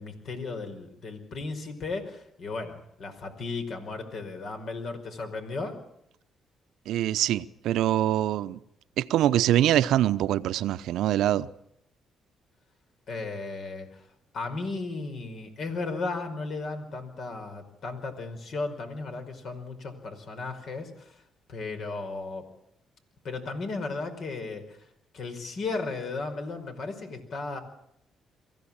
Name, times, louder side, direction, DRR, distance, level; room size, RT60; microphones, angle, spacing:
voice 1, 0.0-5.8 13.1-14.1 14.3-21.2 21.5-22.5 23.2-24.9 25.1-27.6, left 3 dB, 60° left, 5.2 m, -35 dB
voice 2, 6.9-8.6 9.0-11.5, right 12 dB, 85° right, 0.8 m, -24 dB
24.0 x 15.5 x 8.8 m
cardioid pair, 90°, 0 cm